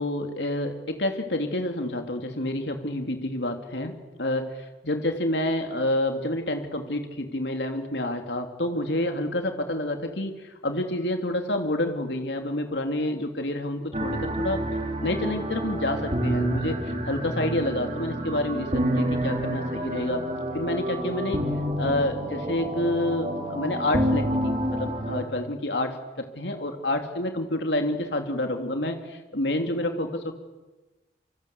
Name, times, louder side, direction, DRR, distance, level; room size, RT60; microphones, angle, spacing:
voice 1, 0.0-4.5 4.8-14.6 15.0-16.8 17.1-20.2 20.5-21.4 21.8-30.3, left 1 dB, 75° left, 5 dB, 3.0 m, -28 dB
sound 1, 13.9-25.2, right 1 dB, 35° right, 3.6 m, -28 dB
27.5 x 25.5 x 8.4 m, 1.2 s
head